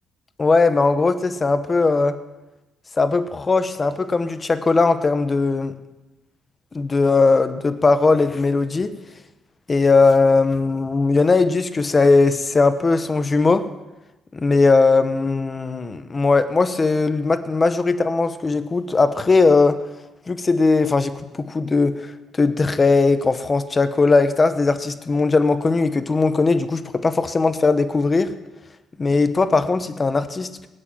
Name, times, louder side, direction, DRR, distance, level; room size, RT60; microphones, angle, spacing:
voice 1, 0.4-2.2 3.0-5.8 6.7-8.9 9.7-13.7 14.3-19.8 20.3-22.0 22.4-28.3 29.0-30.7, left 3 dB, 30° left, 10 dB, 1.1 m, -19 dB
19.5 x 6.7 x 9.0 m, 1.0 s
cardioid pair, 90°, 0 cm